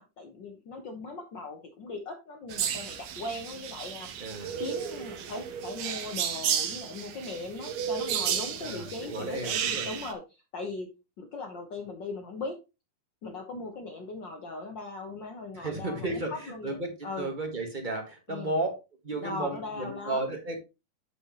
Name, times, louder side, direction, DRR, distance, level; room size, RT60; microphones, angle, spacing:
voice 1, 0.0-4.1 4.6-10.9 11.2-12.6 13.2-17.3 18.3-18.5 19.2-20.4, left 3 dB, 80° left, 3 dB, 1.0 m, -39 dB
sound 1, 2.5-10.1, right 8 dB, 70° right, 1.9 m, -33 dB
voice 2, 4.2-4.6 8.6-9.9 15.5-18.7 19.0-20.6, right 2 dB, 25° right, 2 dB, 1.1 m, -33 dB
8.5 x 6.3 x 3.0 m, 0.27 s
omnidirectional pair, 3.6 m